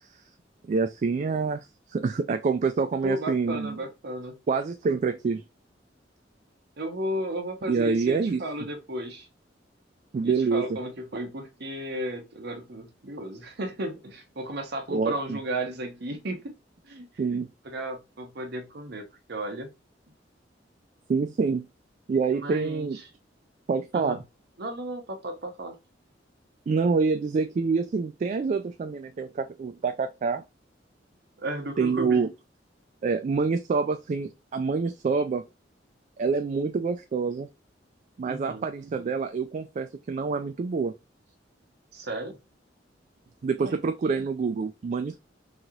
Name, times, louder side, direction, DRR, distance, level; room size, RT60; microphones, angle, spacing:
voice 1, 0.6-1.6 1.9-3.8 4.5-5.4 7.7-8.4 10.1-10.6 14.9-15.4 17.2-17.5 21.1-21.7 22.1-23.0 23.7-24.2 26.7-30.4 31.8-32.3 33.0-35.4 36.2-37.5 38.2-40.9 43.4-45.2, right 4 dB, 40° right, 0.3 m, -26 dB
voice 2, 3.0-4.4 6.8-9.3 10.2-16.5 16.8-17.4 17.6-19.7 22.4-22.9 23.9-24.2 24.6-25.8 31.4-32.3 38.2-38.7 41.9-42.4 43.6-43.7, right 1 dB, 65° right, 0.9 m, -34 dB
3.1 x 2.8 x 2.4 m
head